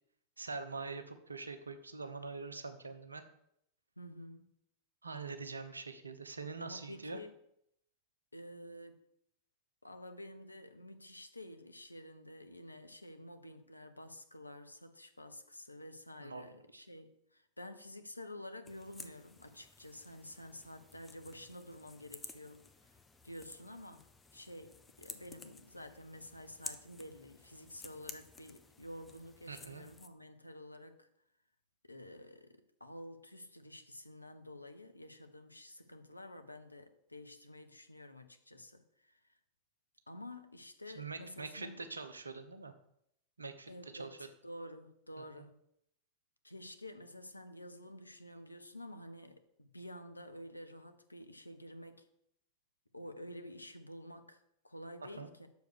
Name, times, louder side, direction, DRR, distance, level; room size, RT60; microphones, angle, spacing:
voice 1, 0.4-3.2 5.0-7.2 16.2-16.4 16.7-16.8 29.5-29.8 40.9-42.7 43.4-44.1 45.2-45.4 55.2-55.3, right 4 dB, 80° right, 9 dB, 0.7 m, -44 dB
voice 2, 4.0-4.5 6.6-7.4 8.3-9.0 9.8-22.7 23.2-24.0 24.3-31.1 31.8-39.2 40.1-41.8 43.7-45.6 46.4-52.1 52.9-55.5, left 1 dB, 85° left, 8 dB, 0.7 m, -50 dB
sound 1, 18.6-30.1, left 3 dB, 10° left, 0.7 m, -53 dB
6.5 x 4.7 x 6.5 m, 0.75 s
figure-of-eight pair, 90°, 0 cm